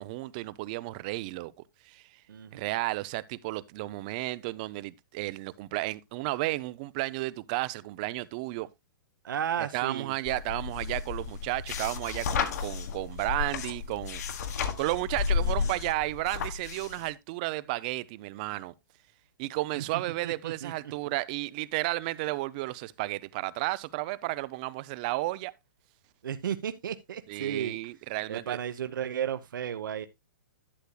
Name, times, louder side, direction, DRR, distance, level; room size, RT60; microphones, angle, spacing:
voice 1, 0.0-1.5 1.8-2.0 2.5-8.7 9.7-18.7 19.4-25.5 27.3-28.6, right 19 dB, 25° right, 0.4 m, -33 dB
voice 2, 2.3-2.7 9.2-10.1 15.4-15.8 19.8-20.7 26.2-27.8 28.3-30.1, right 9 dB, 70° right, 0.9 m, -34 dB
sound 1, 10.3-17.1, left 6 dB, 50° left, 1.5 m, -32 dB
11.5 x 8.2 x 2.2 m
hypercardioid pair, 170°, 11 cm